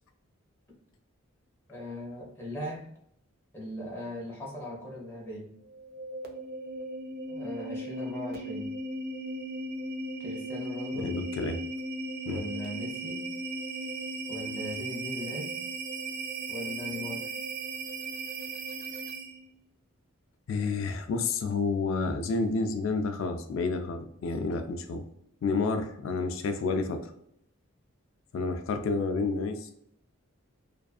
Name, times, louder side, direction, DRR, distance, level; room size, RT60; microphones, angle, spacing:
voice 1, 1.7-2.9 3.5-5.6 7.3-8.8 10.2-11.2 12.2-13.3 14.3-15.6 16.5-17.3, left 1 dB, 10° left, -4 dB, 0.6 m, -39 dB
sound 1, 5.6-19.5, right 2 dB, 45° right, 0.3 m, -37 dB
voice 2, 10.9-11.6 12.3-12.4 20.5-25.0 25.4-27.0 28.3-29.7, left 4 dB, 65° left, 7 dB, 0.3 m, -30 dB
2.5 x 2.4 x 2.3 m, 0.72 s
head